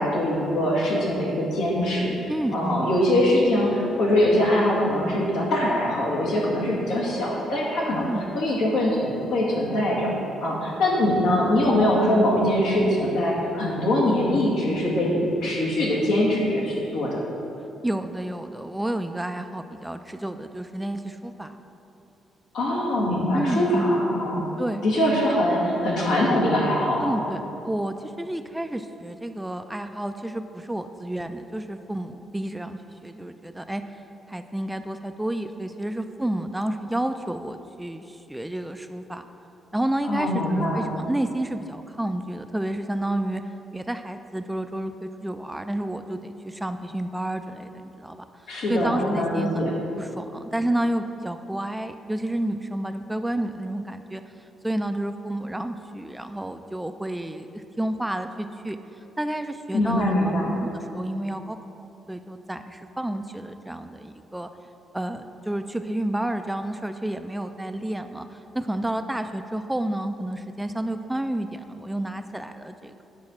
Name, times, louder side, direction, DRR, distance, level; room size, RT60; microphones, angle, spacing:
voice 1, 0.0-2.1 2.5-8.0 8.3-10.1 10.4-17.2 22.5-24.4 24.8-27.2 40.1-40.9 48.5-49.7 59.7-60.5, left 1 dB, 85° left, -4 dB, 1.9 m, -23 dB
voice 2, 2.3-2.9 7.9-8.3 17.8-21.6 23.3-24.0 24.6-24.8 27.0-33.8 34.3-39.3 39.7-43.4 43.7-48.2 48.5-54.2 54.6-58.8 59.2-60.2 60.6-61.6 62.1-64.5 64.9-73.0, right 1 dB, 10° right, 8 dB, 0.3 m, -30 dB
8.6 x 4.2 x 6.0 m, 2.9 s
cardioid pair, 90°, 0 cm